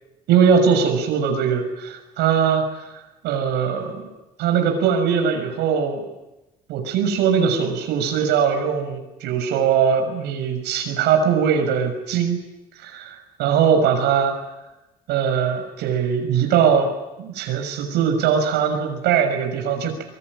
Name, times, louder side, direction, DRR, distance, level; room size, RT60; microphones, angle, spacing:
voice 1, 0.3-2.7 3.2-4.1 4.4-6.0 6.7-12.4 12.8-14.4 15.1-16.9 17.2-20.0, right 7 dB, 85° right, 5 dB, 6.5 m, -20 dB
24.5 x 23.5 x 9.9 m, 0.98 s
cardioid pair, 110°, 17 cm